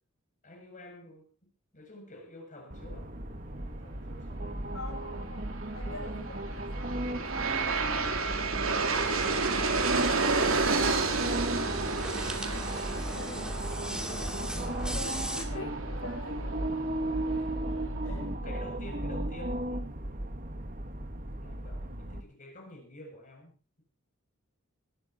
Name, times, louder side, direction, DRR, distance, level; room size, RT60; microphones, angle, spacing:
voice 1, 0.4-4.8 6.4-6.8 8.7-9.1 13.7-16.0 18.0-20.0 21.4-23.8, left 1 dB, 35° left, 3 dB, 8.0 m, -49 dB
sound 1, 2.7-22.2, right 1 dB, 40° right, 2.1 m, -35 dB
voice 2, 4.7-7.5 9.8-12.2 13.1-14.6 14.9-16.9 17.2-18.2 18.4-18.6, left 2 dB, 80° left, -1 dB, 5.1 m, -46 dB
Aircraft, 6.3-17.4, right 4 dB, 65° right, 3.2 m, -31 dB
sound 2, 8.8-15.4, right 1 dB, 5° right, 2.4 m, -40 dB
19.5 x 13.5 x 4.4 m, 0.36 s
head